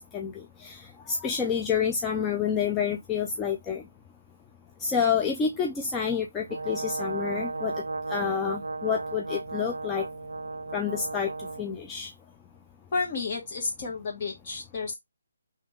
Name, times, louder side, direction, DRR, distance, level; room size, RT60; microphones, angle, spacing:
voice 1, 0.0-3.8 4.8-7.7 8.1-10.1 10.7-11.3 11.6-12.1, left 7 dB, 15° left, 0.4 m, -28 dB
Brass instrument, 6.5-11.7, right 3 dB, 80° right, 0.3 m, -34 dB
voice 2, 12.9-14.9, left 4 dB, 40° left, 1.8 m, -31 dB
3.5 x 3.2 x 3.2 m
figure-of-eight pair, 150°, 0 cm